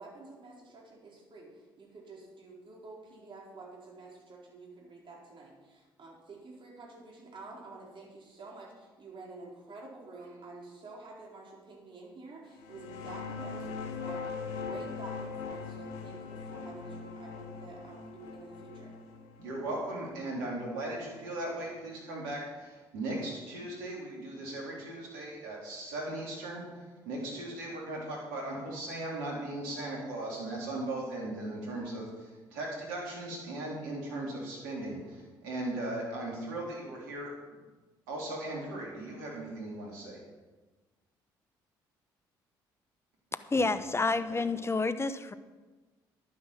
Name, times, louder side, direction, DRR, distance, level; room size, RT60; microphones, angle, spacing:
voice 1, 0.0-19.0, right 3 dB, 50° right, -2 dB, 4.8 m, -49 dB
sound 1, 12.5-21.9, left 5 dB, 80° left, 1.3 m, -41 dB
voice 2, 19.4-26.7 27.1-37.3 38.1-40.2 43.6-43.7 44.3-44.4, right 1 dB, 85° right, -3 dB, 3.9 m, -38 dB
voice 3, 43.5-45.3, left 3 dB, 25° left, 12 dB, 1.1 m, -29 dB
11.0 x 9.5 x 6.0 m, 1.3 s
hypercardioid pair, 50°, 11 cm